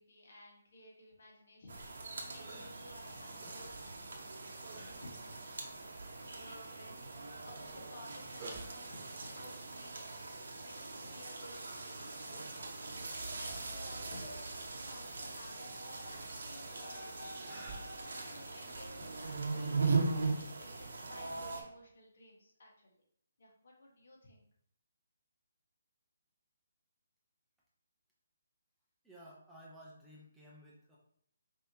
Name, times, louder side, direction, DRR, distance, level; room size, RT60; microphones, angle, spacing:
voice 1, 0.0-5.6 6.2-23.0 23.4-24.4, left 1 dB, 65° left, -1 dB, 1.5 m, -56 dB
sound 1, 1.6-20.3, right 3 dB, 30° right, 1.1 m, -57 dB
sound 2, 1.7-21.6, right 3 dB, 70° right, 1.0 m, -40 dB
Yell, 13.1-14.4 15.1-18.5, left 1 dB, 25° left, 0.8 m, -53 dB
voice 2, 29.0-31.0, equal, 5° right, -6 dB, 0.7 m, -55 dB
5.4 x 2.9 x 2.8 m, 0.66 s
hypercardioid pair, 160°, 0 cm